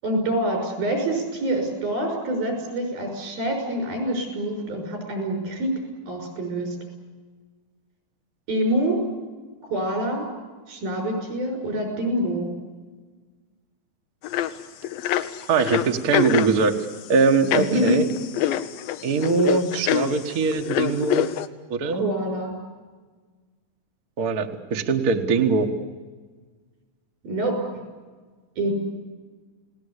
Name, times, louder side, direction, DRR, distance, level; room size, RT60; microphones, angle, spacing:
voice 1, 0.0-5.7 6.1-6.8 8.5-9.0 9.6-10.3 10.7-12.5 17.5-18.0 22.0-22.6 27.2-27.6 28.6-28.7, right 1 dB, 85° right, 3 dB, 7.8 m, -26 dB
sound 1, 14.2-14.5 14.8-21.5, left 11 dB, 90° left, 2.7 m, -26 dB
voice 2, 15.5-16.8 17.1-18.0 19.0-21.3 21.7-22.0 24.2-25.7, right 5 dB, 55° right, 4 dB, 1.0 m, -22 dB
29.5 x 18.5 x 8.2 m, 1.4 s
omnidirectional pair, 4.1 m